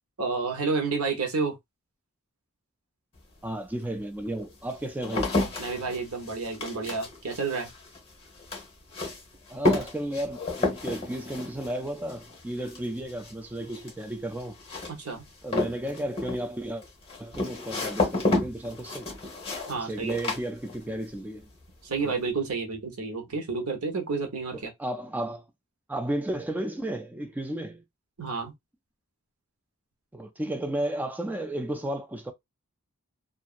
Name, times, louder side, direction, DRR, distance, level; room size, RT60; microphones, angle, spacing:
voice 1, 0.2-1.6 5.6-7.7 14.9-15.3 19.7-20.2 21.8-24.7 28.2-28.5, right 4 dB, 85° right, 1.0 m, -30 dB
sound 1, 3.2-3.3 4.0-21.1 21.4-22.0, left 2 dB, 25° left, 1.1 m, -31 dB
voice 2, 3.4-5.3 9.5-14.6 15.4-16.8 17.2-19.1 19.7-21.5 22.0-22.1 24.5-25.5 25.9-27.8 30.1-32.3, right 1 dB, 10° right, 0.3 m, -33 dB
2.8 x 2.5 x 2.4 m
head